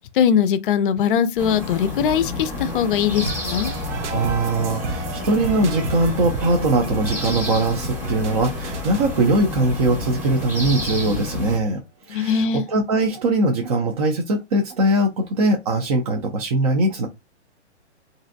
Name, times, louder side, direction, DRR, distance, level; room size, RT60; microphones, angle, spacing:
voice 1, 0.1-3.7 12.1-12.6, left 8 dB, 50° left, 0.4 m, -20 dB
sound 1, 1.4-11.6, left 2 dB, 5° right, 0.7 m, -30 dB
sound 2, 3.2-11.1, right 4 dB, 80° right, 0.7 m, -33 dB
voice 2, 4.1-11.8 12.1-17.1, right 2 dB, 35° right, 0.4 m, -21 dB
3.1 x 2.6 x 2.5 m
hypercardioid pair, 135°, 35 cm